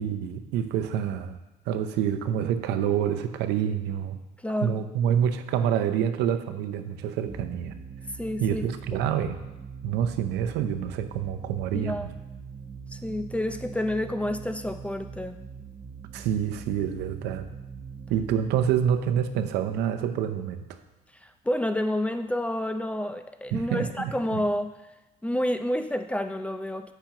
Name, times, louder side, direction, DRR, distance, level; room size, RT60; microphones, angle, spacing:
voice 1, 0.0-1.4 1.7-4.2 4.6-7.7 8.4-9.4 9.8-12.1 16.1-17.5 18.1-20.6 23.5-24.4, right 9 dB, 90° right, 8 dB, 0.7 m, -27 dB
voice 2, 4.4-4.9 8.2-8.6 11.7-12.1 12.9-15.4 21.2-24.7 25.2-26.9, left 1 dB, 5° left, 8 dB, 0.5 m, -29 dB
sound 1, 7.3-20.5, right 6 dB, 25° right, 1.0 m, -43 dB
14.5 x 5.8 x 3.0 m, 1.0 s
cardioid pair, 110°, 17 cm